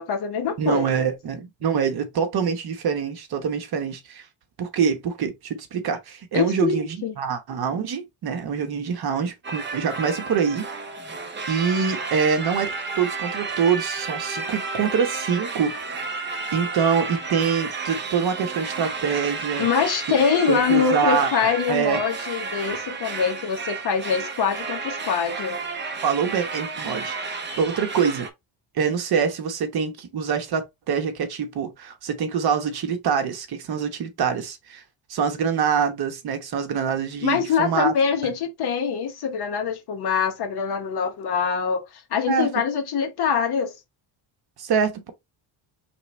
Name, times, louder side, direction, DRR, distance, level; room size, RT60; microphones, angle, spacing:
voice 1, 0.0-1.1 6.3-7.1 19.6-25.6 37.2-43.7, left 6 dB, 50° left, 1.1 m, -24 dB
voice 2, 0.6-4.2 4.6-10.7 11.5-15.8 16.5-19.7 20.5-22.0 26.0-28.3 28.7-34.8 35.1-37.9 38.2-38.3 42.3-42.5 44.6-45.1, right 6 dB, 50° right, 1.0 m, -25 dB
sound 1, 9.4-28.3, right 4 dB, 25° right, 0.7 m, -32 dB
4.7 x 3.4 x 3.1 m
cardioid pair, 175°, 49 cm